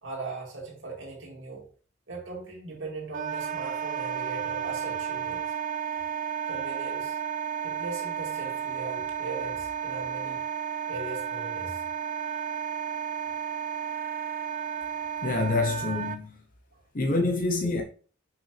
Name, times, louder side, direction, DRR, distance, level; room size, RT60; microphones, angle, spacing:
voice 1, 0.0-1.6 2.1-5.4 6.5-7.2 7.6-10.4 10.9-11.8, right 3 dB, 65° right, 2.3 m, -39 dB
Wind instrument woodwind instrument, 3.1-16.2, right 8 dB, 40° right, 0.4 m, -33 dB
voice 2, 15.2-16.4 16.9-17.8, left 3 dB, 40° left, 0.7 m, -26 dB
6.3 x 5.9 x 3.2 m
head